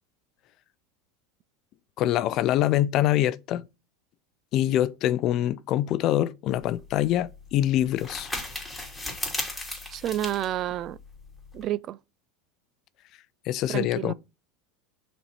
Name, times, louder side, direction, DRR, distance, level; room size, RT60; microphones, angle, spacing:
voice 1, 2.0-3.6 4.5-8.3 13.5-14.1, left 13 dB, 50° left, 0.5 m, -24 dB
sound 1, 6.5-11.7, left 2 dB, 5° left, 2.7 m, -37 dB
voice 2, 9.9-11.0 11.5-12.0 13.7-14.1, right 12 dB, 45° right, 0.4 m, -29 dB
5.6 x 4.3 x 5.4 m
supercardioid pair, 105°, 0 cm